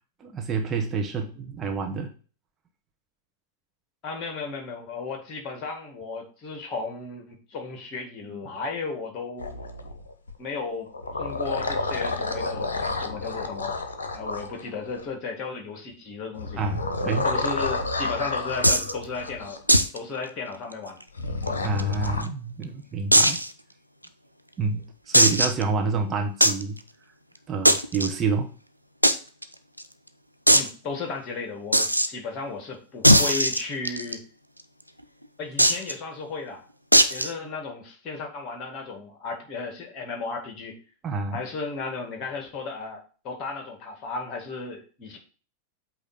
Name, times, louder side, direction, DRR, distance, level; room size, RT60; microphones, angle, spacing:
voice 1, 0.2-2.1 8.3-8.4 16.6-17.3 21.6-23.4 24.6-26.8 27.5-28.5 41.0-41.4, right 4 dB, 25° right, 3 dB, 1.0 m, -28 dB
voice 2, 4.0-9.5 10.4-10.9 11.2-13.8 14.1-16.6 17.2-19.6 19.9-21.0 21.5-21.6 30.5-34.2 35.4-36.6 37.1-40.8 41.3-45.2, left 4 dB, 35° left, 4 dB, 1.9 m, -34 dB
sound 1, 9.4-10.3 10.9-15.1 16.4-19.6 21.2-22.2, left 3 dB, 70° left, 0.8 m, -30 dB
sound 2, 18.6-18.9 19.7-20.0 20.2-20.3 20.7-20.8 21.5-22.2 23.1-23.5 24.0-24.1 25.1-25.6 26.4-26.6 27.6-28.1 29.0-29.1 29.4-29.5 29.8-29.9 30.5-30.7 31.7-32.1 33.0-34.1 35.6-35.9 36.9-37.3, equal, 90° left, 0.5 m, -18 dB
8.2 x 2.9 x 5.6 m, 0.38 s
figure-of-eight pair, 90°, 0 cm